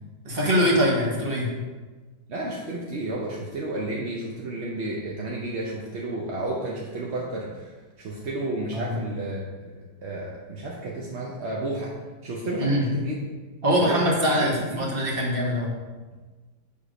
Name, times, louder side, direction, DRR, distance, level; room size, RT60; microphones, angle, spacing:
voice 1, 0.2-1.5 8.7-9.0 12.6-12.8 13.6-15.7, equal, 35° right, -2 dB, 1.3 m, -23 dB
voice 2, 2.3-11.9 12.2-13.2 13.8-14.9, right 2 dB, 55° right, -3 dB, 0.8 m, -32 dB
6.6 x 3.6 x 4.9 m, 1.3 s
omnidirectional pair, 1.8 m